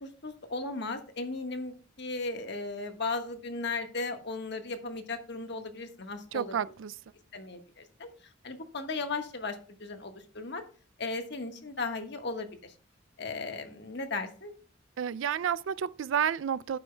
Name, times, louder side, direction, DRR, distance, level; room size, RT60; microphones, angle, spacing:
voice 1, 0.0-6.5 7.3-8.1 8.4-10.6 11.0-12.7 13.2-14.5, left 3 dB, 55° left, 1.4 m, -36 dB
voice 2, 6.3-7.0 15.0-16.8, right 8 dB, 70° right, 0.3 m, -30 dB
11.5 x 9.7 x 2.2 m
head